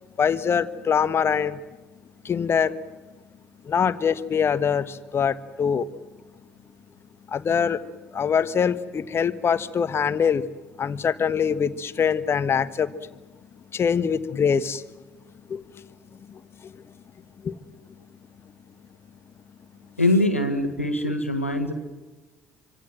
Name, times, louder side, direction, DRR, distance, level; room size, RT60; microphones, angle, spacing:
voice 1, 0.2-1.6 2.2-2.7 3.6-5.9 7.3-7.9 8.1-10.4 10.8-12.9 13.7-14.8 15.5-15.6 16.3-16.8 17.4-17.6, left 7 dB, 35° left, 14 dB, 1.3 m, -24 dB
voice 2, 20.0-21.7, left 1 dB, 90° left, 7 dB, 1.7 m, -23 dB
26.0 x 25.5 x 7.7 m, 1.2 s
figure-of-eight pair, 55°, 7 cm